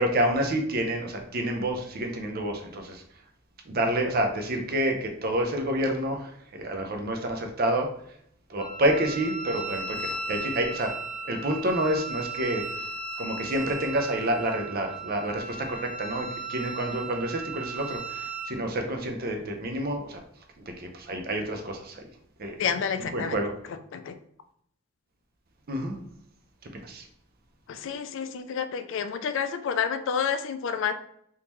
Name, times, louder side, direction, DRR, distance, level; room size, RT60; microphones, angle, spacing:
voice 1, 0.0-3.0 3.7-7.9 8.5-10.9 11.3-12.6 13.2-20.2 20.8-22.0 22.4-22.6 23.1-23.5 25.7-26.0 26.7-27.0, right 1 dB, 50° right, 4 dB, 0.6 m, -28 dB
Wind instrument woodwind instrument, 8.6-18.5, right 3 dB, 25° left, 0.6 m, -36 dB
voice 2, 22.6-23.4 23.7-24.2 27.7-30.9, left 7 dB, 65° left, 10 dB, 0.3 m, -29 dB
3.6 x 2.8 x 3.0 m, 0.70 s
head